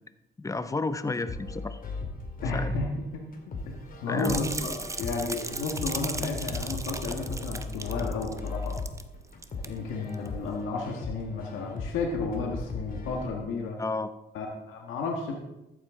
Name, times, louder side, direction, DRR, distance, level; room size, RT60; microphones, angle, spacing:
voice 1, 0.4-1.8 2.5-2.7 4.1-4.4 13.8-14.1, left 3 dB, 15° left, 12 dB, 0.7 m, -31 dB
sound 1, 1.3-13.3, left 3 dB, 45° left, 2.3 m, -38 dB
voice 2, 2.4-3.2 4.0-8.7 9.6-13.8 14.3-15.3, left 3 dB, 90° left, 1 dB, 1.7 m, -32 dB
sound 2, 4.2-9.1 9.3-9.7 10.1-10.3, right 2 dB, 15° right, 0.8 m, -37 dB
13.0 x 9.6 x 3.7 m, 0.95 s
cardioid pair, 90°, 20 cm